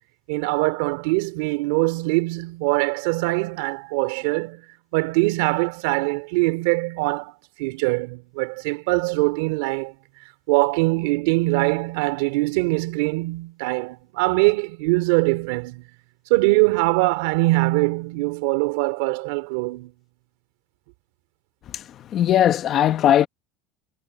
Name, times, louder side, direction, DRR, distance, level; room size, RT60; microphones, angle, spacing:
voice 1, 0.3-4.6 4.9-7.3 7.6-9.9 10.5-15.8 16.3-19.9, right 23 dB, 80° right, 3.1 m, -22 dB
voice 2, 21.7-23.3, left 11 dB, 35° left, 1.2 m, -19 dB
cardioid pair, 160°, 0 cm